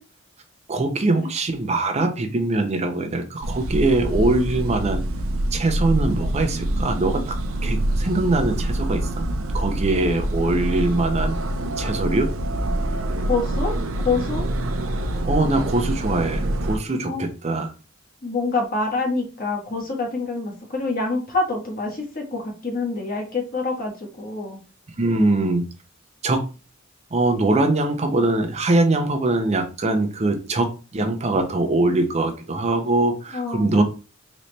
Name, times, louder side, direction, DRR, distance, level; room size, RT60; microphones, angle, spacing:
voice 1, 0.7-5.0 5.5-7.3 7.6-9.3 9.5-11.4 11.8-12.3 15.2-17.7 25.0-25.6 26.2-26.5 27.1-33.8, right 2 dB, 35° right, 5 dB, 0.6 m, -22 dB
sound 1, 3.4-16.8, right 1 dB, 85° right, 0.6 m, -25 dB
voice 2, 13.3-13.7 14.0-14.5 17.0-17.3 18.2-24.6 25.2-25.5 33.3-33.8, left 3 dB, 45° left, 0 dB, 1.4 m, -26 dB
4.1 x 3.1 x 3.2 m, 0.33 s
head